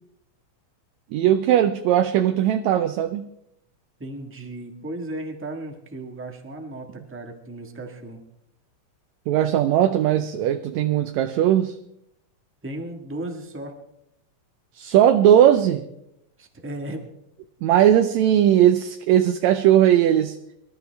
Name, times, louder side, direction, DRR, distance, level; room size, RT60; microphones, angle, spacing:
voice 1, 1.1-3.3 9.3-11.8 14.8-15.9 17.6-20.4, right 11 dB, 75° right, 8 dB, 1.9 m, -18 dB
voice 2, 4.0-8.2 12.6-13.7 16.4-17.0, right 1 dB, 10° right, 3 dB, 0.5 m, -35 dB
25.0 x 13.0 x 3.4 m, 0.78 s
omnidirectional pair, 3.4 m